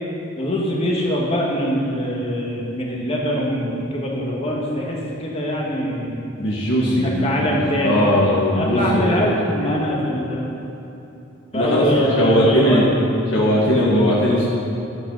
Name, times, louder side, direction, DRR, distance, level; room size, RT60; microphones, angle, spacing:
voice 1, 0.4-6.2 6.9-8.2 8.5-10.6 11.5-12.8, equal, 30° left, -3 dB, 2.0 m, -23 dB
voice 2, 6.4-9.4 9.6-9.7 11.5-11.8 12.2-12.9 13.3-14.5, equal, 65° left, -6 dB, 1.8 m, -19 dB
12.0 x 9.3 x 5.7 m, 2.9 s
head